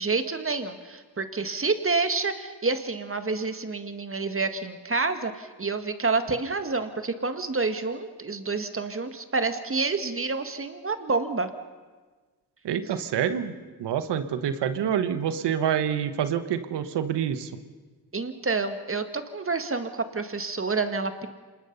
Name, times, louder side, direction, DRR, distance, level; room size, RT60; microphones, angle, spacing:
voice 1, 0.0-11.5 18.1-21.3, right 4 dB, 30° right, 8 dB, 2.0 m, -28 dB
voice 2, 12.6-13.5 13.8-17.5, right 8 dB, 90° right, 11 dB, 1.3 m, -27 dB
26.5 x 20.0 x 5.6 m, 1.4 s
cardioid pair, 65°, 40 cm